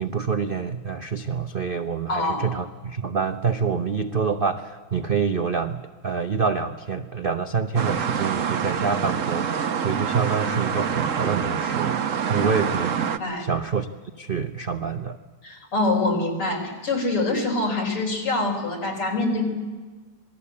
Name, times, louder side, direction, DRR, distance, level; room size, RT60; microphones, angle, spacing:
voice 1, 0.0-12.0 12.2-13.1 13.4-13.9 14.2-15.2, right 5 dB, 70° right, 8 dB, 0.5 m, -26 dB
voice 2, 2.1-2.5 13.2-13.5 15.4-19.5, left 2 dB, 80° left, 2 dB, 5.3 m, -25 dB
sound 1, 7.8-13.2, right 7 dB, 50° right, 1.0 m, -26 dB
27.0 x 19.5 x 8.5 m, 1.4 s
omnidirectional pair, 2.4 m